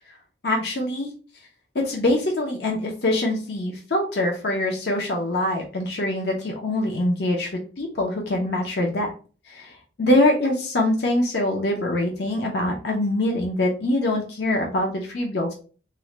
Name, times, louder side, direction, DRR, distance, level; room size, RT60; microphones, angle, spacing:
voice 1, 0.4-1.1 1.7-9.1 9.5-9.7 10.0-15.5, left 1 dB, 55° left, 1 dB, 0.6 m, -24 dB
3.7 x 2.1 x 3.0 m, 0.38 s
head